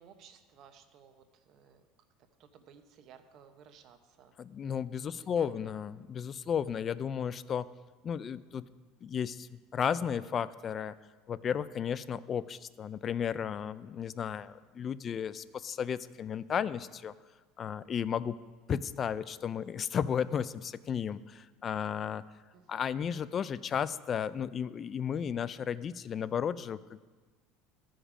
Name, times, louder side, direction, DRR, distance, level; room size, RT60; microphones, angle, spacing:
voice 1, 0.0-1.9 2.4-4.3 5.2-5.5 22.5-23.2, right 8 dB, 50° right, 8 dB, 0.8 m, -57 dB
voice 2, 4.4-7.7 8.0-8.7 9.0-10.9 11.3-17.1 17.6-18.4 18.7-22.2 22.7-27.0, left 8 dB, 35° left, 17 dB, 0.3 m, -34 dB
13.0 x 5.1 x 4.9 m, 1.4 s
supercardioid pair, 120°, 0 cm